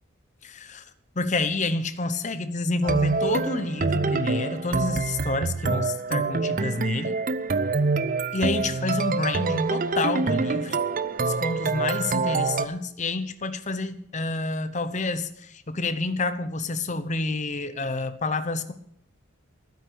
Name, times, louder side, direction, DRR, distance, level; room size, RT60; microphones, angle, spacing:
voice 1, 0.4-0.8 1.1-7.2 8.3-10.8 11.2-18.7, left 3 dB, 35° left, 11 dB, 0.9 m, -28 dB
sound 1, 2.8-12.7, right 4 dB, 40° right, 0.6 m, -26 dB
12.0 x 9.7 x 7.0 m, 0.69 s
head